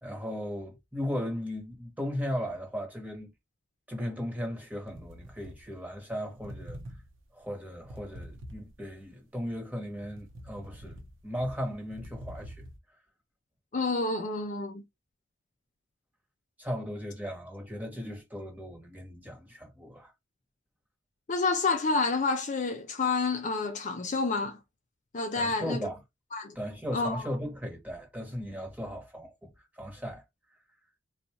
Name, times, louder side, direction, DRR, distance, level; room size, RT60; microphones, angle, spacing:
voice 1, 0.0-3.3 3.9-6.8 7.3-12.6 16.6-20.1 25.3-26.0 26.5-30.2, equal, 10° right, 1.1 m, -37 dB
sound 1, 4.9-6.1 6.3-9.1 9.5-12.8, equal, 75° right, 0.8 m, -46 dB
voice 2, 13.7-14.8 21.3-24.6 25.1-25.8 26.3-26.5 26.9-27.3, left 3 dB, 35° left, 0.4 m, -29 dB
3.9 x 2.3 x 2.8 m
head